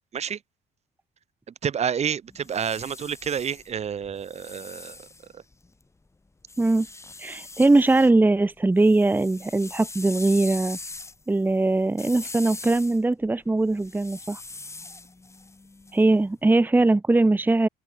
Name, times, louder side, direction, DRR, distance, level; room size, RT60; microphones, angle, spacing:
voice 1, 1.6-5.0 5.3-5.4, right 7 dB, 40° right, 1.4 m, -29 dB
sound 1, 2.3-5.8 6.5-8.1 8.5-16.4, left 3 dB, 15° left, 5.1 m, -42 dB
voice 2, 7.2-10.8 11.3-14.4 15.9-17.7, right 2 dB, 10° right, 1.1 m, -21 dB
cardioid pair, 110°, 17 cm